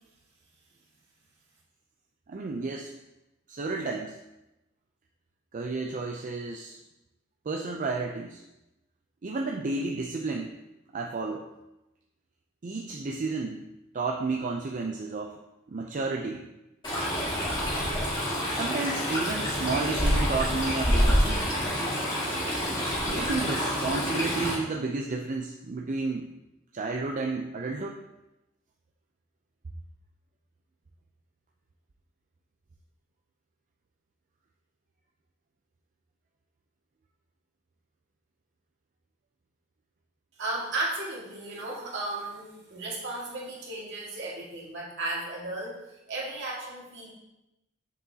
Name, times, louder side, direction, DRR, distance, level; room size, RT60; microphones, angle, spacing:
voice 1, 2.3-2.9 3.5-4.2 5.5-6.8 7.5-8.4 9.2-10.5 10.9-11.5 12.6-13.6 13.9-15.4 15.7-16.5 18.5-21.5 23.0-26.3 26.7-28.0, right 3 dB, 40° right, 2 dB, 0.5 m, -32 dB
Stream, 16.8-24.5, equal, 25° left, 2.1 m, -27 dB
voice 2, 40.4-45.8 46.1-47.1, right 2 dB, 60° right, -4 dB, 2.0 m, -34 dB
7.0 x 6.8 x 2.8 m, 0.94 s
head